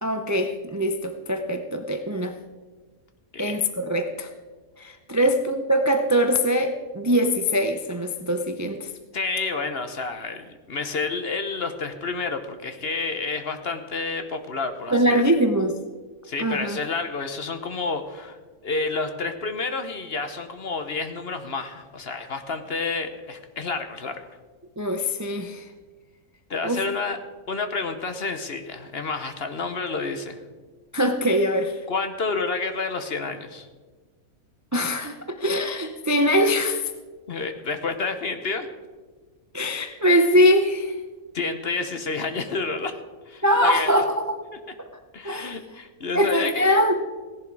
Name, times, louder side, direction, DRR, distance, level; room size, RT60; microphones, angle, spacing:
voice 1, 0.0-2.3 3.4-4.3 4.8-8.9 14.9-15.8 16.4-16.8 24.8-25.6 26.6-26.8 30.9-31.8 34.7-36.9 39.5-40.9 43.4-44.4 44.8-44.9 45.2-45.6 46.1-46.9, equal, 20° right, 6 dB, 0.5 m, -22 dB
voice 2, 9.1-15.2 16.2-18.4 18.6-24.2 26.5-27.2 27.5-30.4 31.9-33.7 37.3-38.7 41.3-43.0 43.3-43.9 45.1-46.8, left 4 dB, 45° left, 8 dB, 1.1 m, -29 dB
16.5 x 11.0 x 4.7 m, 1.4 s
omnidirectional pair, 1.5 m